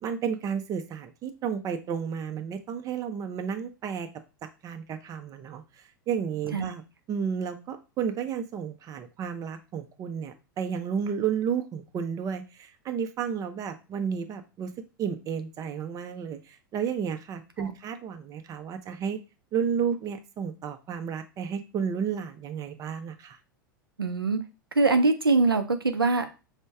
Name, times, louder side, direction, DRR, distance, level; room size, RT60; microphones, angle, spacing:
voice 1, 0.0-4.1 4.6-6.8 7.1-14.7 15.0-19.2 19.5-23.4, right 7 dB, 30° right, 8 dB, 0.6 m, -32 dB
voice 2, 24.0-24.4 24.8-26.3, right 3 dB, 90° right, 7 dB, 0.5 m, -23 dB
5.2 x 2.1 x 3.4 m, 0.30 s
figure-of-eight pair, 90°, 12 cm